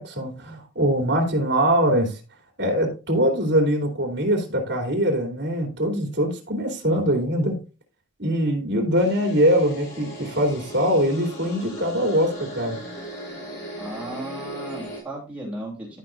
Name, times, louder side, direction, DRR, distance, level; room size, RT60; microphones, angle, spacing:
voice 1, 0.0-2.2 2.6-7.6 8.2-12.8, equal, 55° right, 3 dB, 2.9 m, -22 dB
sound 1, 8.9-15.0, right 1 dB, 55° left, 4.1 m, -37 dB
voice 2, 13.8-15.9, right 1 dB, 5° right, -4 dB, 3.0 m, -35 dB
13.5 x 5.8 x 2.5 m, 0.32 s
head